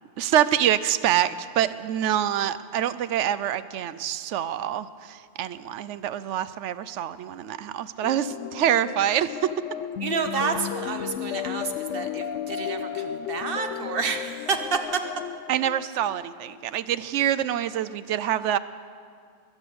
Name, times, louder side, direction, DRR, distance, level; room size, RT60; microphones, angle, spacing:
voice 1, 0.2-9.5 15.5-18.6, right 11 dB, 75° right, 15 dB, 0.9 m, -26 dB
sound 1, 8.0-16.6, left 9 dB, 75° left, 1.0 m, -34 dB
voice 2, 10.0-15.0, right 5 dB, 50° right, 7 dB, 1.1 m, -29 dB
21.5 x 8.3 x 7.0 m, 2.2 s
omnidirectional pair, 1.3 m